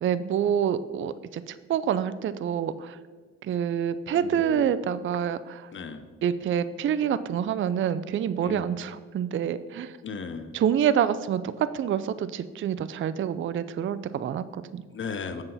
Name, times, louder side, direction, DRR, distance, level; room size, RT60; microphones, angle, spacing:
voice 1, 0.0-3.0 3.4-5.7 6.2-10.0 10.5-14.8, right 9 dB, 40° right, 14 dB, 0.4 m, -27 dB
voice 2, 4.1-4.7 5.7-6.0 8.4-8.7 10.0-10.5 14.9-15.4, left 5 dB, 40° left, 10 dB, 0.8 m, -36 dB
7.8 x 7.1 x 4.1 m, 1.4 s
cardioid pair, 90°, 30 cm